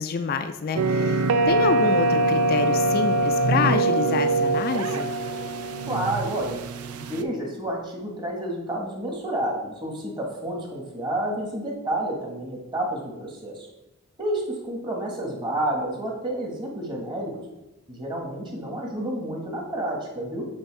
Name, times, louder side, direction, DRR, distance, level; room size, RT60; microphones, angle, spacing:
voice 1, 0.0-5.1, left 5 dB, 45° left, 7 dB, 0.3 m, -27 dB
sound 1, 0.8-7.2, right 2 dB, 85° right, 0.4 m, -23 dB
voice 2, 5.9-6.6 6.9-13.7 14.2-17.3 17.9-20.4, right 1 dB, 20° right, -1 dB, 1.3 m, -30 dB
8.0 x 3.4 x 4.6 m, 0.98 s
head